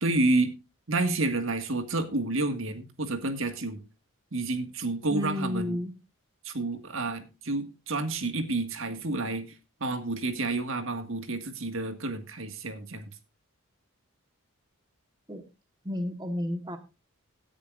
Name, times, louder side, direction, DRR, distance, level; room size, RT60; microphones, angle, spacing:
voice 1, 0.0-0.5 0.9-3.8 4.3-5.8 6.4-9.5 9.8-13.1, right 2 dB, 60° right, 1.8 m, -29 dB
voice 2, 5.1-5.9 15.3-15.4 15.8-16.8, left 1 dB, 20° right, 1.3 m, -31 dB
17.5 x 10.0 x 2.5 m
head